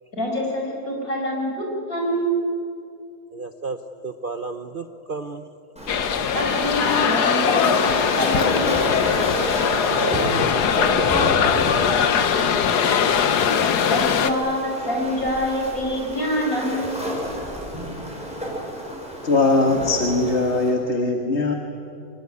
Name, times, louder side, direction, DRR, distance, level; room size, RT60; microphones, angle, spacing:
voice 1, 0.1-2.4 6.3-8.8 13.9-17.0, equal, 60° left, 0 dB, 6.2 m, -26 dB
voice 2, 3.3-5.5 9.7-12.0, right 4 dB, 45° right, 8 dB, 0.8 m, -33 dB
Waves surf, 5.8-20.7, equal, 5° right, 6.8 m, -31 dB
sound 1, 5.9-14.3, left 7 dB, 85° left, 1.6 m, -20 dB
voice 3, 19.2-21.5, left 3 dB, 45° left, 2 dB, 2.0 m, -20 dB
24.5 x 22.5 x 9.6 m, 2.5 s
omnidirectional pair, 1.7 m